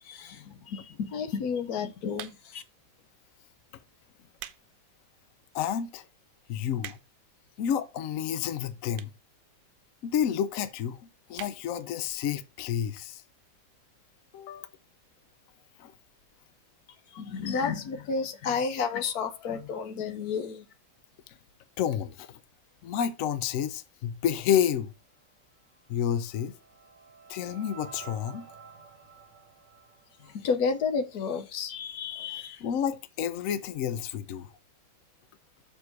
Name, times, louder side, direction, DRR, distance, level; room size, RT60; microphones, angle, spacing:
voice 1, 0.0-2.6 17.1-20.7 30.2-32.6, left 5 dB, 55° left, 1.3 m, -31 dB
sound 1, 2.1-2.7 3.4-3.6 4.1-4.7 5.1-5.2 5.8-5.9 6.1-6.2 6.4-7.3 8.1-8.2 8.9-9.3 9.6-9.7 9.9-10.0 10.2-10.3 10.6-10.8 11.3-11.6 12.0-12.1 12.3-12.4, right 12 dB, 75° right, 1.3 m, -43 dB
voice 2, 5.5-6.0 6.5-7.0 7.6-9.1 10.0-11.0 11.3-13.2 14.3-14.7 15.8-15.9 21.3-21.4 21.8-22.4 22.8-24.9 25.9-26.5 27.3-28.5 32.6-34.5, left 9 dB, 80° left, 0.7 m, -30 dB
sound 2, 25.9-31.1, right 6 dB, 25° right, 1.8 m, -51 dB
6.8 x 4.7 x 4.6 m
omnidirectional pair, 2.1 m